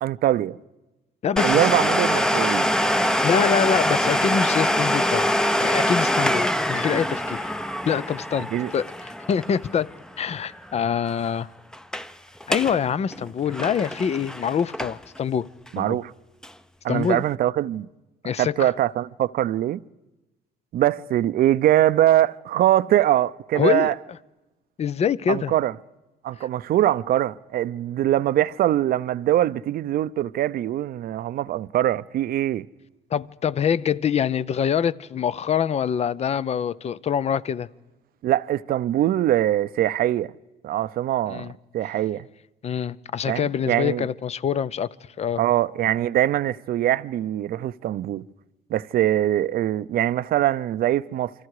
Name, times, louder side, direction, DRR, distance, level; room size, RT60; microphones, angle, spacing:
voice 1, 0.0-0.6 1.4-2.7 8.5-8.7 15.7-16.1 16.8-17.9 18.4-19.8 20.7-23.9 25.3-25.7 26.2-32.7 38.2-40.3 40.6-41.5 41.7-42.3 43.3-44.0 45.4-48.2 48.7-51.3, right 13 dB, 60° right, 0.7 m, -22 dB
voice 2, 1.2-1.7 3.2-5.3 5.6-7.5 7.9-9.9 10.2-11.5 12.5-15.5 15.8-16.0 16.9-17.2 18.2-18.7 23.5-23.9 24.8-25.5 33.1-37.7 41.2-41.5 42.6-44.9 45.2-45.4, left 8 dB, 40° left, 0.7 m, -25 dB
Domestic sounds home sounds, 1.4-10.8 11.0-11.1 11.7-12.1 12.4-12.8 13.1-15.2 15.7-15.8 16.4-16.5, equal, 5° left, 0.7 m, -24 dB
28.5 x 24.5 x 4.9 m
cardioid pair, 110°, 17 cm